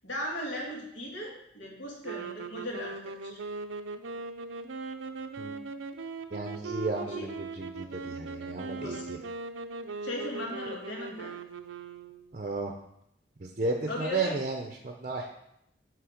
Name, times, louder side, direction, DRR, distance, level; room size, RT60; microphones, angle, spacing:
voice 1, 0.0-3.4 7.0-7.3 8.0-8.1 8.8-9.1 10.0-11.3 13.9-14.3, left 1 dB, 75° left, -1 dB, 1.9 m, -37 dB
sound 1, 2.0-12.4, right 3 dB, 90° right, 0.5 m, -39 dB
voice 2, 6.3-9.2 12.3-12.8 13.4-15.3, right 3 dB, 40° right, 3 dB, 0.6 m, -33 dB
9.4 x 3.3 x 5.1 m, 0.76 s
head